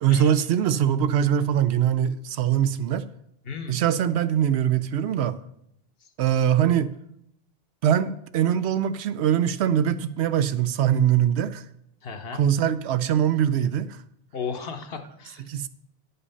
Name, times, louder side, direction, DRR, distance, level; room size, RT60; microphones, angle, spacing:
voice 1, 0.0-3.1 3.7-5.4 6.2-6.9 7.8-11.6 12.4-14.0 15.5-15.7, right 9 dB, 90° right, 0.8 m, -22 dB
voice 2, 3.4-3.8 12.0-12.4 14.3-15.5, left 5 dB, 65° left, 1.1 m, -35 dB
9.8 x 5.6 x 5.5 m
omnidirectional pair, 1.1 m